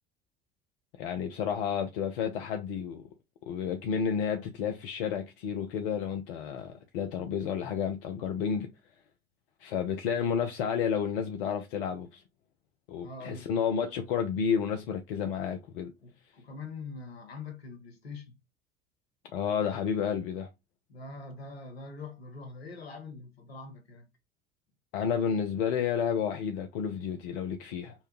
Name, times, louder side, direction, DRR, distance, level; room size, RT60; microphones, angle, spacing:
voice 1, 1.0-3.0 3.5-8.7 9.6-12.2 12.9-15.9 19.3-20.5 24.9-27.9, left 7 dB, 65° left, 0.6 m, -31 dB
voice 2, 13.0-13.6 16.0-18.3 20.9-24.1, left 3 dB, 80° left, 1.1 m, -44 dB
5.5 x 2.2 x 2.9 m
figure-of-eight pair, 65°, 30 cm